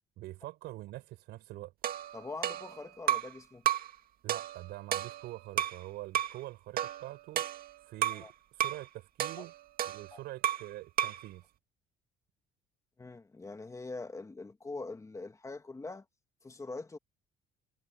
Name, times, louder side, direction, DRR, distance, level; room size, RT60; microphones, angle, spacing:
voice 1, 0.2-1.7 4.2-7.5 7.8-9.5 9.8-11.4, right 17 dB, 85° right, 5.1 m, -45 dB
sound 1, 1.8-3.4 3.7-3.9 4.3-5.8 6.1-6.4 6.8-8.3 8.6-8.8 9.2-10.7 11.0-11.3, right 11 dB, 60° right, 2.1 m, -33 dB
voice 2, 2.1-3.6 8.1-8.3 9.4-9.5 10.1-10.2 13.0-16.0 16.4-17.0, left 3 dB, 20° left, 2.3 m, -43 dB
cardioid pair, 110°, 17 cm